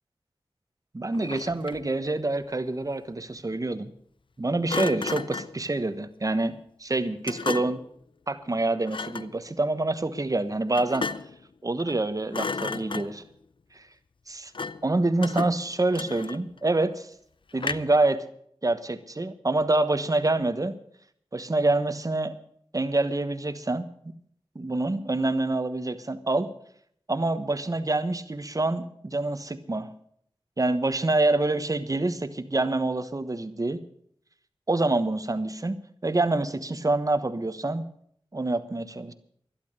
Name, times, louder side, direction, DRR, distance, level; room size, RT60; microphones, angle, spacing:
voice 1, 0.9-3.9 4.4-7.8 8.3-11.1 11.6-13.2 13.7-13.8 14.3-14.5 14.8-17.1 17.5-18.2 18.6-20.8 21.3-22.3 22.7-23.9 24.5-26.5 27.1-29.9 30.6-33.8 34.7-37.8 38.3-39.1, right 2 dB, 35° right, 11 dB, 1.2 m, -26 dB
Thump thud, 1.1-2.0 4.7-5.6 7.3-7.9 8.9-9.3 10.7-11.4 11.8-12.0 12.3-13.3 14.5-14.9 15.2-16.6 17.6-18.1, left 4 dB, 60° left, 0.6 m, -33 dB
12.0 x 11.5 x 6.7 m, 0.66 s
cardioid pair, 50°, 10 cm